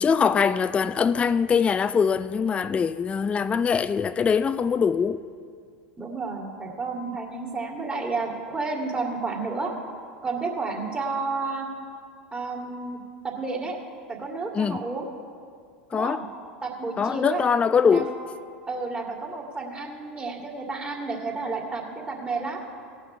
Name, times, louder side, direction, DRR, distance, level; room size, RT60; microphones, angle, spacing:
voice 1, 0.0-5.2 14.6-14.8 15.9-16.2 17.0-18.1, left 6 dB, 20° left, 0.3 m, -22 dB
voice 2, 6.0-9.7 10.2-11.7 12.3-13.0 13.2-13.8 14.1-15.1 15.9-16.2 16.6-17.5 17.8-18.1 18.7-22.6, right 3 dB, 20° right, 2.2 m, -31 dB
17.5 x 5.8 x 5.5 m
hypercardioid pair, 85°, 6 cm